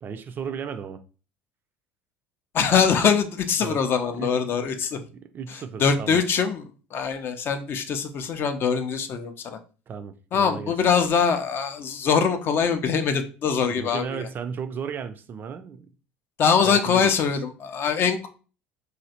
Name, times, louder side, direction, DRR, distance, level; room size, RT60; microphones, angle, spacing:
voice 1, 0.0-1.0 3.6-3.8 4.1-4.3 5.1-6.2 9.9-10.7 13.6-15.9 16.6-17.1, right 7 dB, 35° right, 0.3 m, -34 dB
voice 2, 2.5-5.0 5.8-6.6 6.9-9.6 10.3-14.3 16.4-18.3, left 6 dB, 40° left, 0.4 m, -23 dB
3.1 x 2.4 x 2.7 m
figure-of-eight pair, 65°, 6 cm